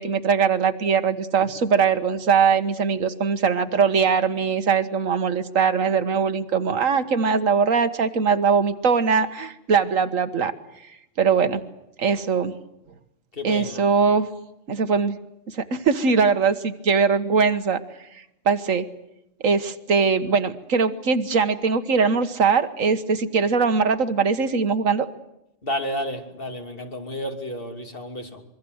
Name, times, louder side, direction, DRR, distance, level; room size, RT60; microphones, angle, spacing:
voice 1, 0.0-10.5 11.2-11.6 12.0-12.6 13.4-14.3 14.7-15.2 15.5-17.8 18.5-18.9 19.4-25.1, right 5 dB, 90° right, 10 dB, 1.8 m, -21 dB
voice 2, 13.3-13.9 25.6-28.4, equal, 45° left, 5 dB, 3.0 m, -31 dB
25.5 x 23.5 x 8.0 m, 0.84 s
omnidirectional pair, 1.3 m